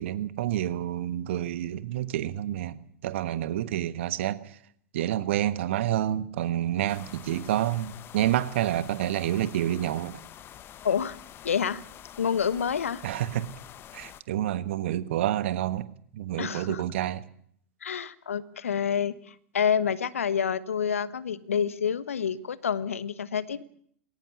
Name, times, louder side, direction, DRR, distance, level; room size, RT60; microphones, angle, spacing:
voice 1, 0.0-4.6 4.9-10.2 13.0-13.5 13.9-15.9 16.1-17.2, right 12 dB, 60° right, 15 dB, 1.4 m, -28 dB
sound 1, 6.9-14.2, left 11 dB, 30° left, 1.3 m, -47 dB
voice 2, 10.8-11.2 11.4-11.8 12.2-13.0 16.4-16.8 17.8-23.6, left 7 dB, 75° left, 17 dB, 1.2 m, -28 dB
21.0 x 18.5 x 8.3 m, 0.64 s
figure-of-eight pair, 95°, 7 cm